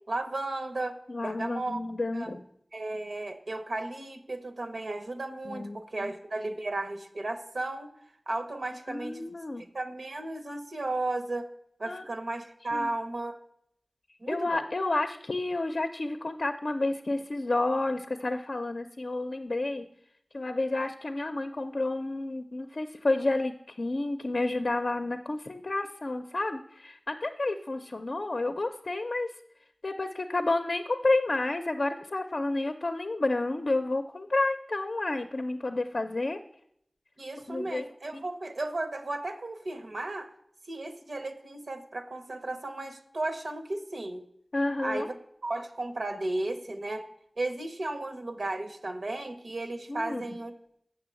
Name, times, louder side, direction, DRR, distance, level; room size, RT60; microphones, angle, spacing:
voice 1, 0.1-1.0 1.2-1.8 2.1-2.4 2.7-7.9 8.3-9.3 9.7-11.5 11.8-13.4 14.2-14.6 37.2-40.3 40.7-44.2 44.8-45.2 45.4-47.1 47.4-50.5, right 2 dB, 80° right, 7 dB, 0.8 m, -34 dB
voice 2, 1.1-2.4 5.5-6.1 8.9-9.7 11.8-12.1 12.7-12.9 14.3-19.9 20.3-29.3 29.8-36.4 37.5-37.8 38.1-38.2 44.5-45.1 49.9-50.2, left 2 dB, 65° left, 7 dB, 0.5 m, -30 dB
6.9 x 6.5 x 7.6 m, 0.72 s
wide cardioid pair, 45°, 0 cm